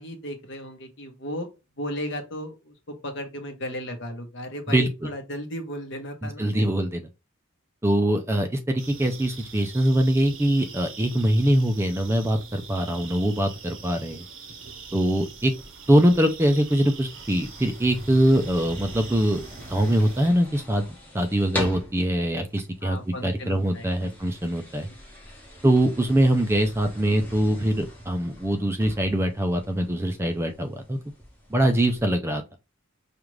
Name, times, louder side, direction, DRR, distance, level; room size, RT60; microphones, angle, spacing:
voice 1, 0.0-1.5 1.8-6.6 22.8-24.1, equal, 55° left, 0.9 m, -35 dB
voice 2, 6.4-7.0 7.8-14.2 14.9-15.5 15.9-19.4 19.7-20.9 21.1-24.9 25.6-31.0 31.5-32.4, right 1 dB, 10° right, 0.4 m, -23 dB
sound 1, 8.8-20.3, right 5 dB, 65° right, 1.1 m, -43 dB
sound 2, 15.0-32.1, left 1 dB, 10° left, 1.0 m, -42 dB
5.0 x 2.4 x 3.1 m
head